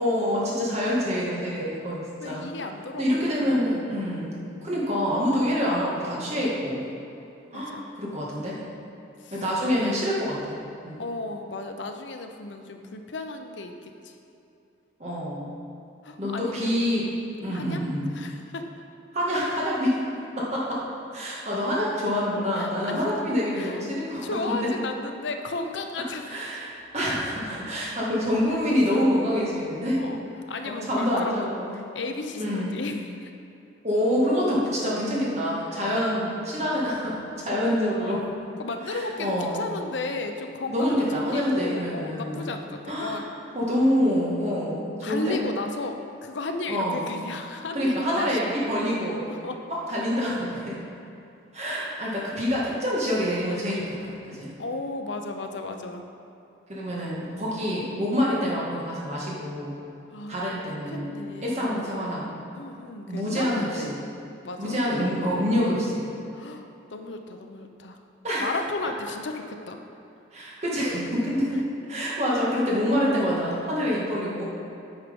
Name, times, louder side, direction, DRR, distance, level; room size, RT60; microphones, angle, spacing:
voice 1, 0.0-2.4 3.0-6.9 7.5-8.6 9.3-10.4 10.8-11.0 15.0-15.5 16.2-17.1 17.4-18.1 19.1-20.0 20.4-20.8 21.1-24.3 24.6-24.7 26.3-30.0 30.8-31.7 32.4-32.8 33.8-38.2 38.9-39.6 40.7-42.5 42.9-43.2 43.5-45.4 46.7-47.1 47.7-49.2 49.7-50.8 51.5-54.5 56.7-59.7 60.3-61.1 61.4-62.3 63.1-63.9 64.6-66.0 68.2-68.5 70.3-71.6 71.9-74.4, equal, 35° right, -5 dB, 1.9 m, -26 dB
voice 2, 2.2-3.7 7.5-7.9 9.2-9.4 11.0-14.2 16.0-17.3 17.5-17.8 18.1-18.7 22.5-23.0 23.5-23.8 24.2-26.6 28.5-28.6 30.0-30.2 30.5-33.3 35.7-35.8 37.4-38.3 38.6-43.6 45.0-48.5 49.3-49.6 52.1-52.2 54.6-56.0 60.1-61.9 62.5-63.9 64.4-64.8 66.3-68.0 68.4-69.8 71.5-71.6, left 3 dB, 70° left, 5 dB, 0.7 m, -35 dB
9.5 x 6.1 x 5.3 m, 2.8 s
head